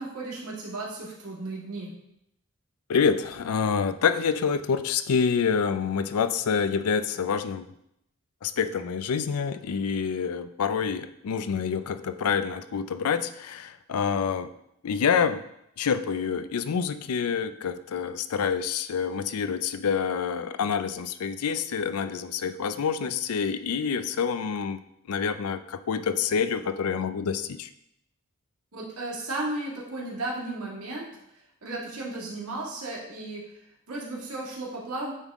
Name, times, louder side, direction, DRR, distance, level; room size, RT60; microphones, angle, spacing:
voice 1, 0.0-1.9 28.7-31.1 31.6-33.4 33.9-35.1, right 2 dB, 80° right, -4 dB, 2.0 m, -34 dB
voice 2, 2.9-7.7 8.4-14.5 14.8-15.4 15.8-24.8 25.1-27.7, left 6 dB, 85° left, 12 dB, 0.4 m, -27 dB
9.4 x 3.6 x 3.6 m, 0.78 s
head